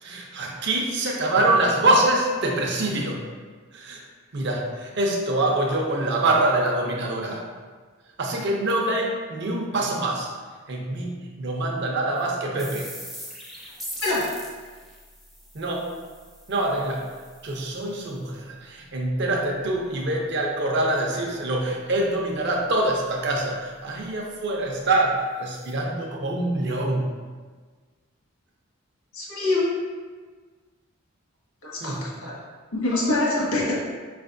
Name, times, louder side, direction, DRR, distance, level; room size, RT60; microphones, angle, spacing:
voice 1, 0.0-3.2 3.7-4.0 4.3-7.4 8.2-10.3 10.7-11.1 11.4-12.9 15.5-15.9 16.5-17.1 17.4-27.1 31.8-32.0, right 2 dB, 55° right, 0 dB, 0.6 m, -25 dB
sound 1, 12.2-12.3 12.6-18.2 25.1-25.2 25.6-25.7, equal, ahead, 0.5 m, -41 dB
voice 2, 29.1-29.7 31.6-31.9 32.2-32.3 32.7-33.7, left 2 dB, 80° left, -6 dB, 1.4 m, -24 dB
5.1 x 3.3 x 2.6 m, 1.5 s
head